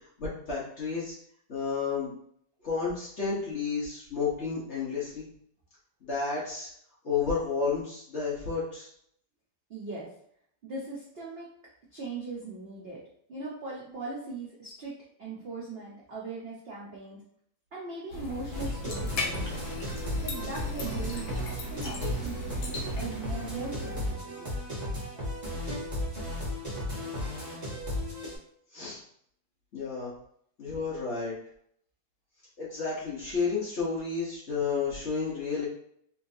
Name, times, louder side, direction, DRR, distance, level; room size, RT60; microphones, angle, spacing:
voice 1, 0.2-1.1 1.5-2.1 2.6-5.3 6.0-6.7 7.0-8.9 28.7-29.0 29.7-30.1 30.6-31.4 32.6-35.7, left 5 dB, 50° left, -7 dB, 0.9 m, -31 dB
voice 2, 9.7-10.1 10.6-11.5 11.9-13.0 13.3-14.9 15.2-17.2 17.7-19.7 20.2-24.5, right 3 dB, 80° right, -6 dB, 0.5 m, -39 dB
sound 1, 18.1-24.1, left 1 dB, 75° left, 1.5 m, -37 dB
sound 2, 18.5-28.4, left 1 dB, 25° right, 1.1 m, -35 dB
3.3 x 3.0 x 2.6 m, 0.68 s
omnidirectional pair, 2.1 m